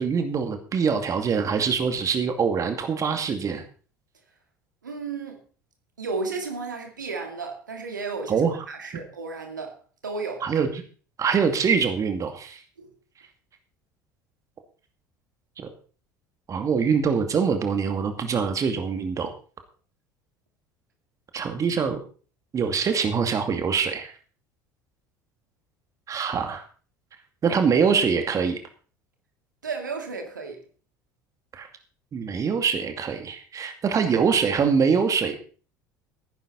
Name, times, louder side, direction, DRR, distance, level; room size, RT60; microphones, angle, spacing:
voice 1, 0.0-3.6 8.3-8.6 10.4-10.7 11.2-12.6 15.6-15.7 16.5-19.3 21.3-22.0 22.5-24.1 26.1-26.6 27.4-28.6 31.5-31.7 32.1-35.4, right 6 dB, 35° right, 2.4 m, -24 dB
voice 2, 4.8-5.4 6.0-9.8 10.0-10.5 12.8-12.9 29.6-30.6, right 4 dB, 80° right, 2.3 m, -33 dB
15.0 x 11.0 x 4.2 m
figure-of-eight pair, 65°, 10 cm